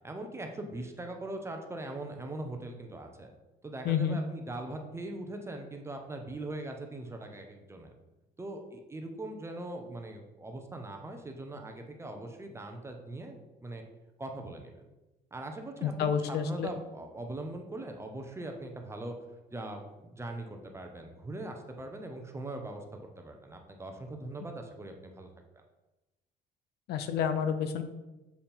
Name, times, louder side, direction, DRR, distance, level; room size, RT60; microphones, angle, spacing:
voice 1, 0.0-3.3 3.6-7.9 8.4-13.8 14.2-14.8 15.3-19.1 19.5-22.8 23.2-25.3 25.5-25.6, right 2 dB, 15° right, 3 dB, 0.9 m, -41 dB
voice 2, 3.8-4.2 15.8-16.7 26.9-27.8, left 8 dB, 75° left, 9 dB, 0.6 m, -29 dB
7.0 x 3.6 x 4.4 m, 1.0 s
cardioid pair, 110°, 17 cm